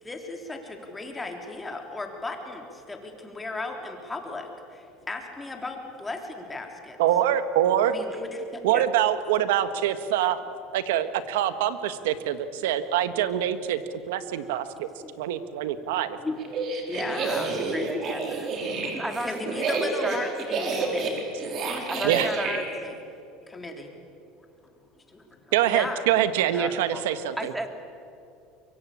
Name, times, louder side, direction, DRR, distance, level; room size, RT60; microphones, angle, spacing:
voice 1, 0.0-7.0 7.9-8.6 15.0-15.1 15.9-16.4 16.8-18.2 19.2-21.2 21.7-23.0 23.5-23.9 25.1-26.0 26.5-27.0, left 2 dB, 15° left, 3 dB, 3.7 m, -36 dB
voice 2, 7.0-7.9 8.6-10.4 10.7-13.8 14.1-14.9 15.2-16.2 22.0-22.3 25.5-27.5, right 11 dB, 90° right, 11 dB, 1.5 m, -24 dB
sound 1, 16.4-22.6, right 4 dB, 45° right, 4.5 m, -29 dB
voice 3, 17.3-18.5 18.8-19.8 20.0-20.3 20.7-21.0 21.9-22.6 27.4-27.7, right 1 dB, 10° right, 6 dB, 2.5 m, -34 dB
23.5 x 23.5 x 8.7 m, 2.6 s
supercardioid pair, 120°, 0 cm